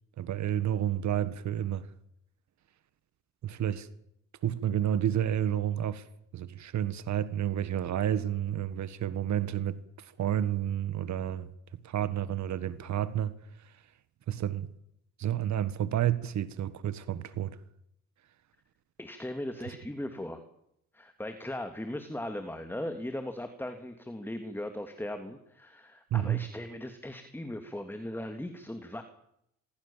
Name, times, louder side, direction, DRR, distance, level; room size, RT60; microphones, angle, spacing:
voice 1, 0.2-1.9 3.4-3.9 4.4-6.1 6.3-13.8 14.3-14.7 15.2-17.6 19.7-19.8 26.1-26.4, right 11 dB, 65° right, 1.7 m, -30 dB
voice 2, 19.0-20.4 20.9-29.0, left 1 dB, 5° left, 3.0 m, -38 dB
26.5 x 22.5 x 7.5 m
cardioid pair, 90°, 30 cm